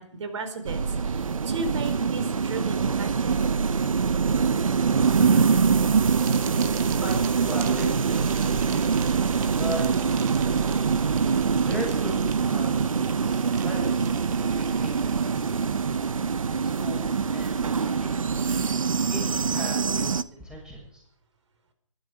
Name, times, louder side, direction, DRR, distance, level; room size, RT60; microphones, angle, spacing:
voice 1, 0.0-3.4, right 3 dB, 60° right, 9 dB, 4.3 m, -35 dB
sound 1, 0.6-20.2, right 5 dB, 90° right, 0.9 m, -24 dB
sound 2, 6.0-15.3, right 9 dB, 30° right, 1.6 m, -43 dB
voice 2, 7.0-8.9 9.5-9.8 10.1-10.7 11.3-14.1 14.5-15.5 16.6-18.5 19.1-21.0, equal, 5° right, -2 dB, 6.8 m, -38 dB
21.0 x 12.5 x 5.0 m, 0.67 s
hypercardioid pair, 155°, 17 cm